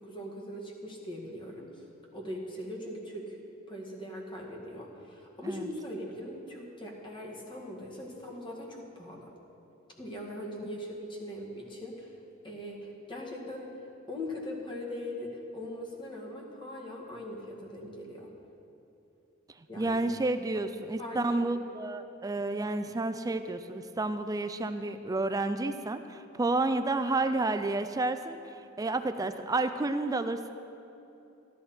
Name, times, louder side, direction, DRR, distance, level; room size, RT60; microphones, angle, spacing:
voice 1, 0.0-1.8 2.1-3.4 3.7-9.3 10.0-12.1 12.4-13.7 14.1-18.3 19.7-20.0 20.5-20.7 21.0-21.5, left 1 dB, 25° left, -2 dB, 1.9 m, -40 dB
voice 2, 19.8-30.5, right 2 dB, 20° right, 10 dB, 0.4 m, -30 dB
13.5 x 12.5 x 4.3 m, 2.9 s
head